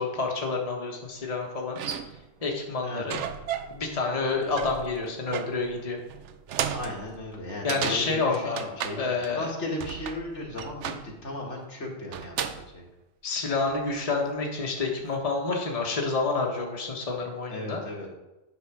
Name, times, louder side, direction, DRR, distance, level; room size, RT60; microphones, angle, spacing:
voice 1, 0.0-1.8 2.4-3.2 3.7-6.0 7.6-9.5 13.2-17.8, left 3 dB, 35° left, 0 dB, 1.3 m, -29 dB
sound 1, 1.2-1.3 1.7-2.4 3.1-3.9 4.1-9.5 9.8-11.3 12.1-12.7 13.4-13.9, right 8 dB, 80° right, 0.9 m, -35 dB
voice 2, 6.7-12.8 17.5-18.1, left 1 dB, 75° left, -1 dB, 2.1 m, -36 dB
9.9 x 4.2 x 6.0 m, 1.0 s
omnidirectional pair, 1.2 m